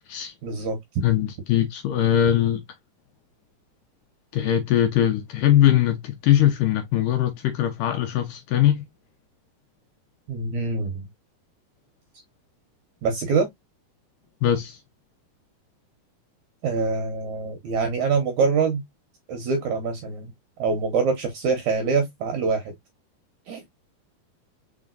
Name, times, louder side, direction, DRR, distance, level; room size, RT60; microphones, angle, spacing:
voice 1, 0.4-0.8 10.3-11.1 13.0-13.5 16.6-18.8 19.3-20.3 20.6-22.7 23.5-23.6, right 4 dB, 70° right, 1.8 m, -24 dB
voice 2, 1.0-2.6 4.3-8.8 14.4-14.8, left 11 dB, 75° left, 2.1 m, -21 dB
5.0 x 4.2 x 2.4 m
omnidirectional pair, 4.4 m